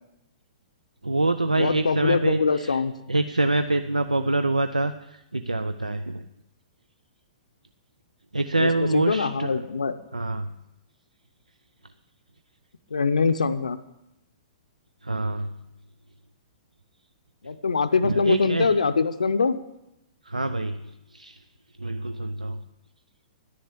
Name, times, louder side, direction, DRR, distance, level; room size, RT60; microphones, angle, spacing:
voice 1, 1.0-2.8 3.1-6.3 8.3-9.7 10.1-10.5 15.0-15.6 18.0-18.8 20.2-21.4 21.8-22.6, right 2 dB, 90° right, 10 dB, 0.4 m, -26 dB
voice 2, 1.6-2.9 8.6-9.9 12.9-13.8 17.4-19.6, left 5 dB, 75° left, 11 dB, 0.5 m, -23 dB
11.0 x 6.9 x 7.4 m, 0.88 s
figure-of-eight pair, 115°, 4 cm